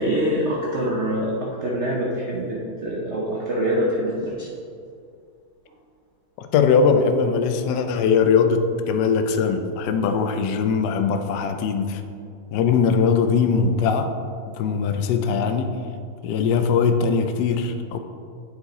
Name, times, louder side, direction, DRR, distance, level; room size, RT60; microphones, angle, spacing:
voice 1, 0.0-4.5, equal, 75° right, -3 dB, 0.6 m, -25 dB
voice 2, 6.4-12.0 12.5-14.3 14.6-15.7 16.2-18.0, left 5 dB, 80° left, 6 dB, 0.9 m, -21 dB
8.4 x 4.7 x 3.9 m, 2.4 s
omnidirectional pair, 2.4 m